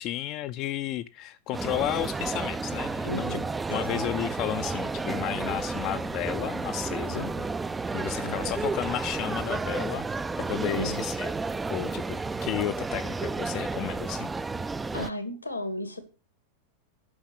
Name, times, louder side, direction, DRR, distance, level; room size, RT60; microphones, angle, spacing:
voice 1, 0.0-3.4 3.7-7.3 7.9-11.3 11.7-14.3, left 14 dB, 40° left, 11 dB, 0.5 m, -33 dB
sound 1, 1.5-15.1, right 3 dB, 10° right, 0.4 m, -32 dB
voice 2, 3.0-3.5 3.9-4.1 7.1-7.6 8.1-8.5 10.7-11.0 14.9-16.0, left 1 dB, 85° left, 9 dB, 2.1 m, -35 dB
9.6 x 6.1 x 7.8 m, 0.34 s
figure-of-eight pair, 90°, 0 cm